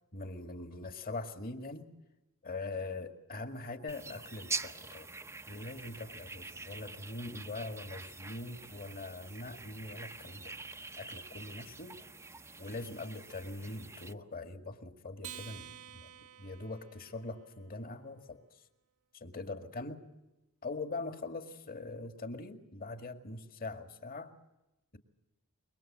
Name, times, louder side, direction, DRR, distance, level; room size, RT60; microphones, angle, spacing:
voice 1, 0.1-1.9 2.4-5.1 5.5-10.6 11.0-12.0 12.6-16.1 16.4-18.6 19.1-20.0 20.6-24.3, left 2 dB, 40° left, 7 dB, 2.0 m, -42 dB
sound 1, 3.9-14.1, right 3 dB, 10° right, 0.9 m, -45 dB
Acoustic guitar, 15.2-17.9, right 9 dB, 75° right, 1.6 m, -50 dB
26.5 x 23.0 x 7.5 m, 0.96 s
head